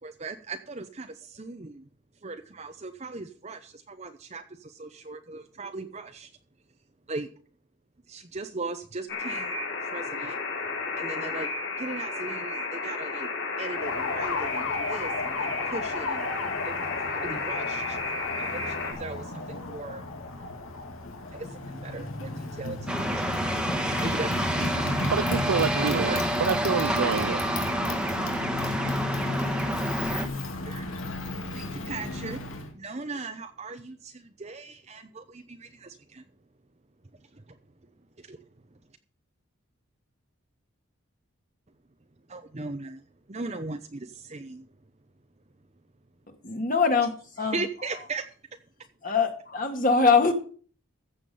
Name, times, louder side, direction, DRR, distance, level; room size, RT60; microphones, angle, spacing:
voice 1, 0.0-1.9 2.2-6.4 7.1-7.3 8.1-10.4 11.0-11.5 11.8-13.3 13.6-16.3 16.6-20.0 21.3-25.2 25.8-26.2 28.6-29.0 29.9-36.2 37.1-37.9 38.2-38.4 38.7-38.8 42.3-44.7 47.4-48.2, right 3 dB, 30° right, 0.8 m, -39 dB
Alarm, 9.1-18.9, left 3 dB, 65° left, 4.1 m, -32 dB
Motorcycle, 13.7-32.7, left 2 dB, 80° left, 2.7 m, -34 dB
sound 1, 22.9-30.3, equal, 5° right, 1.3 m, -28 dB
voice 2, 25.1-27.4, right 6 dB, 85° right, 0.5 m, -27 dB
voice 3, 46.4-47.1 47.4-47.5 49.0-50.3, left 4 dB, 40° left, 2.0 m, -22 dB
14.5 x 7.3 x 5.5 m
head